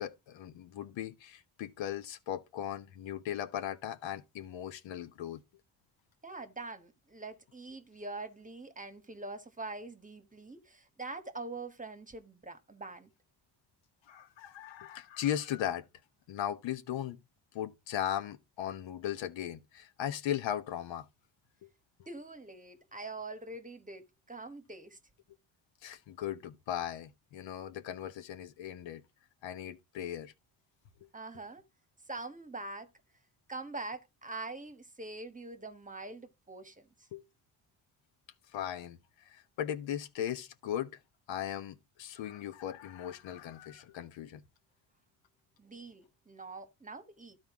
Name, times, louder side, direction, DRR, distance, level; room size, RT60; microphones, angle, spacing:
voice 1, 0.0-5.4 14.1-15.8 16.3-17.2 17.5-21.1 25.8-29.0 29.4-30.3 37.1-37.2 38.5-41.0 41.3-44.4, left 10 dB, 75° left, 1.2 m, -38 dB
voice 2, 6.2-13.1 22.1-25.0 31.1-31.6 32.1-32.9 33.5-37.1 45.6-47.4, right 3 dB, 15° right, 1.2 m, -44 dB
12.5 x 4.4 x 3.6 m
cardioid pair, 85°, 45 cm